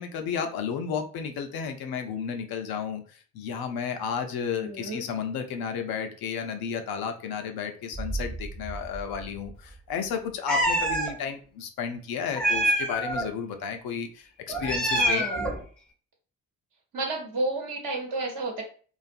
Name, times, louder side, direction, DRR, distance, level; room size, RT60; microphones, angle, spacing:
voice 1, 0.0-15.3, left 7 dB, 55° left, 6 dB, 0.6 m, -32 dB
voice 2, 4.6-5.1 14.9-15.5 16.9-18.6, right 2 dB, 40° right, -1 dB, 1.0 m, -31 dB
sound 1, 7.9-10.6 10.9-11.0, right 3 dB, 20° right, 1.0 m, -38 dB
Meow, 10.5-11.1 12.4-13.3 14.5-15.6, right 1 dB, ahead, 0.7 m, -25 dB
2.5 x 2.4 x 2.5 m, 0.41 s
hypercardioid pair, 45°, 45 cm